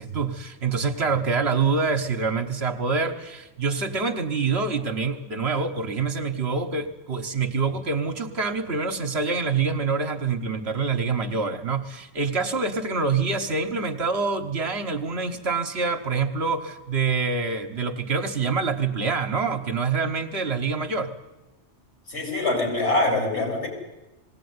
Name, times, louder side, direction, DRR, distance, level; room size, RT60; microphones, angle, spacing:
voice 1, 0.0-21.1, right 4 dB, 60° right, 7 dB, 1.5 m, -26 dB
voice 2, 22.1-23.7, left 2 dB, 60° left, 1 dB, 6.1 m, -24 dB
20.0 x 17.0 x 9.6 m, 1.0 s
omnidirectional pair, 1.3 m